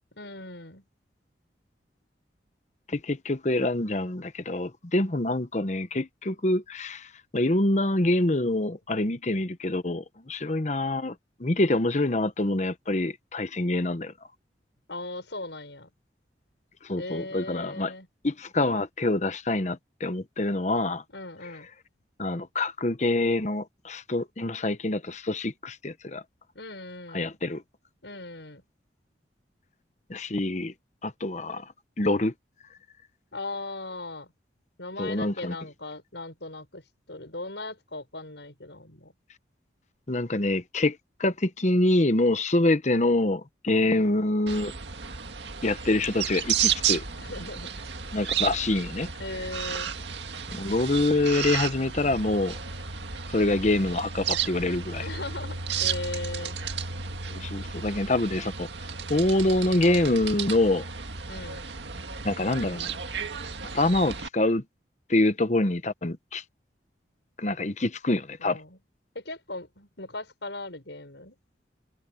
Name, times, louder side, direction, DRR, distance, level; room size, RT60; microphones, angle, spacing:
voice 1, 0.1-0.8 14.9-15.9 17.0-18.1 21.1-21.7 26.5-27.4 28.0-28.6 33.3-34.3 34.8-39.1 43.8-44.2 47.1-47.7 49.2-49.9 55.0-56.6 61.3-61.7 68.4-68.8 69.1-71.4, left 2 dB, 80° left, 6.2 m, -38 dB
voice 2, 2.9-11.1 11.4-14.1 16.8-17.9 18.2-21.0 22.2-26.2 27.1-27.6 30.1-30.7 31.0-31.7 32.0-32.3 35.0-35.5 40.1-44.7 45.6-47.0 48.1-49.1 50.5-52.6 53.3-55.0 57.3-58.7 59.1-60.9 62.2-62.9 63.7-64.6 65.1-66.4 67.4-68.6, left 2 dB, 40° left, 1.0 m, -26 dB
sound 1, 44.5-64.3, right 7 dB, 75° right, 1.9 m, -33 dB
head